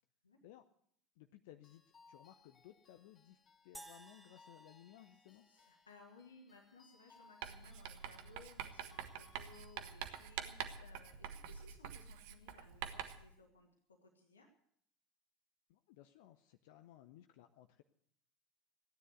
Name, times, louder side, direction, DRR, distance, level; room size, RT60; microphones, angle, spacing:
voice 1, 1.2-1.8 2.1-5.5 15.7-17.8, left 13 dB, 60° left, 8 dB, 0.6 m, -60 dB
sound 1, 1.6-10.7, left 4 dB, 30° left, 3.2 m, -67 dB
sound 2, 3.7-6.2, right 1 dB, 5° right, 1.0 m, -58 dB
voice 2, 5.3-14.5, left 3 dB, 80° left, 1 dB, 1.8 m, -62 dB
Writing, 7.4-13.3, right 9 dB, 60° right, 1.1 m, -46 dB
15.0 x 10.0 x 8.0 m, 0.67 s
figure-of-eight pair, 70°, 0 cm